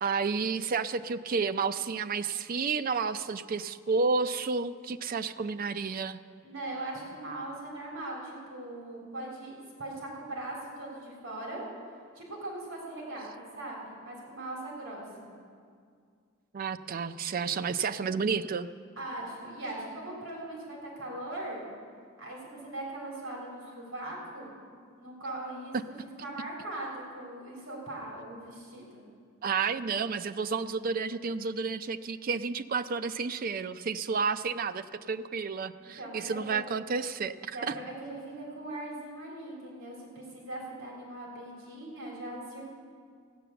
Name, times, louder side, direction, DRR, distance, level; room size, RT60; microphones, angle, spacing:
voice 1, 0.0-6.2 16.5-18.7 25.7-25.8 29.4-37.7, right 5 dB, 45° right, 11 dB, 0.4 m, -31 dB
voice 2, 6.4-11.6 12.1-15.3 19.0-21.6 22.2-24.5 25.0-29.0 36.0-36.6 37.5-42.6, right 1 dB, 65° right, -2 dB, 3.3 m, -40 dB
15.0 x 9.2 x 6.9 m, 2.1 s
head